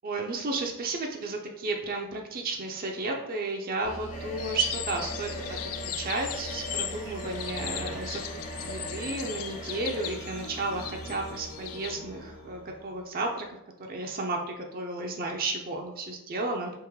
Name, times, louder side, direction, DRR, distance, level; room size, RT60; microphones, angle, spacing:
voice 1, 0.0-5.4 5.8-8.2 8.6-13.4 13.9-16.7, right 3 dB, 45° right, 2 dB, 0.5 m, -33 dB
sound 1, 3.8-13.3, right 1 dB, 55° left, 1.5 m, -42 dB
sound 2, 4.1-10.1, left 1 dB, 35° left, 0.7 m, -42 dB
sound 3, 4.4-12.0, left 12 dB, 70° left, 0.3 m, -38 dB
3.6 x 3.0 x 4.6 m, 0.85 s
head